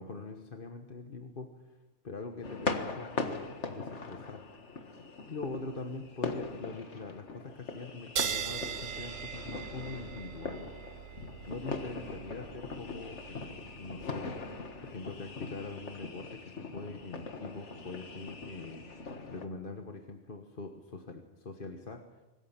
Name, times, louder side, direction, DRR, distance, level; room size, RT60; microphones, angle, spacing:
voice 1, 0.0-1.8 2.0-4.5 5.3-10.7 11.5-14.3 14.8-22.2, left 3 dB, 40° left, 4 dB, 1.5 m, -43 dB
sound 1, 2.4-19.5, left 3 dB, 55° left, 1.9 m, -41 dB
sound 2, 8.2-15.1, right 8 dB, 70° right, 1.3 m, -40 dB
25.5 x 15.0 x 7.4 m, 1.1 s
omnidirectional pair, 1.4 m